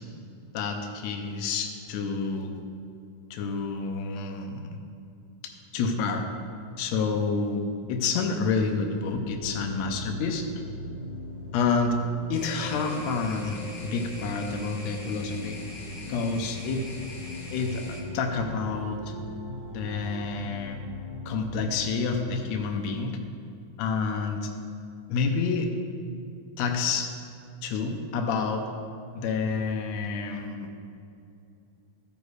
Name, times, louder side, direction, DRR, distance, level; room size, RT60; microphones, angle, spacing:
voice 1, 0.5-2.6 3.3-4.7 5.7-6.2 6.8-7.6 7.9-10.5 11.5-11.9 12.3-15.6 16.1-16.9 17.5-19.1 19.7-20.8 21.2-23.2 23.8-24.5 25.1-25.7 26.6-27.1 27.6-28.6 29.1-30.7, left 4 dB, 75° left, 3 dB, 1.8 m, -29 dB
sound 1, 9.1-22.6, left 1 dB, 25° right, 1.0 m, -39 dB
sound 2, 12.3-18.0, left 2 dB, 40° left, 2.0 m, -44 dB
13.5 x 5.1 x 4.8 m, 2.5 s
omnidirectional pair, 3.5 m